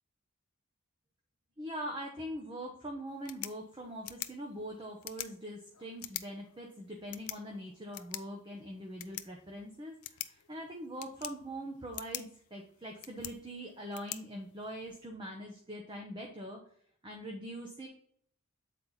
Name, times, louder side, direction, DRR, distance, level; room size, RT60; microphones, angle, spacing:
voice 1, 1.6-16.6 17.0-17.9, equal, 20° right, 1 dB, 0.8 m, -43 dB
sound 1, 3.1-15.1, left 14 dB, 85° left, 0.5 m, -47 dB
7.9 x 4.3 x 4.0 m, 0.63 s
head